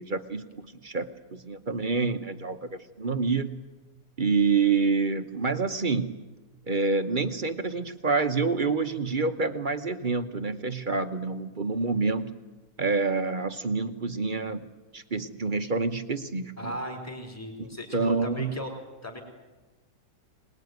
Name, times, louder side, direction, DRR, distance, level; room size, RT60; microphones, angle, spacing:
voice 1, 0.0-3.6 4.2-6.2 6.7-12.4 12.8-14.7 14.9-16.8 17.6-17.7 17.9-18.5, right 4 dB, 35° right, 9 dB, 0.9 m, -27 dB
voice 2, 16.6-18.7 19.0-19.2, equal, 10° left, 1 dB, 4.1 m, -36 dB
25.0 x 20.0 x 9.4 m, 1.2 s
omnidirectional pair, 1.8 m